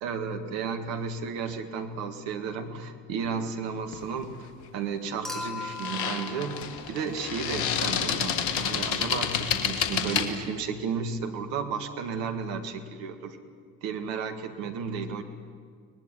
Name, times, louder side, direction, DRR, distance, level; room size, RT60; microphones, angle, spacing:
voice 1, 0.0-6.6 6.9-13.4 13.8-15.2, right 5 dB, 80° right, 6 dB, 2.0 m, -33 dB
sound 1, 3.9-4.2 5.6-10.3, left 8 dB, 85° left, 1.7 m, -29 dB
Human group actions / Chink clink / Liquid, 5.2-7.6 9.1-9.2, left 3 dB, ahead, 6.8 m, -39 dB
23.5 x 20.0 x 9.9 m, 2.1 s
hypercardioid pair, 40°, 43 cm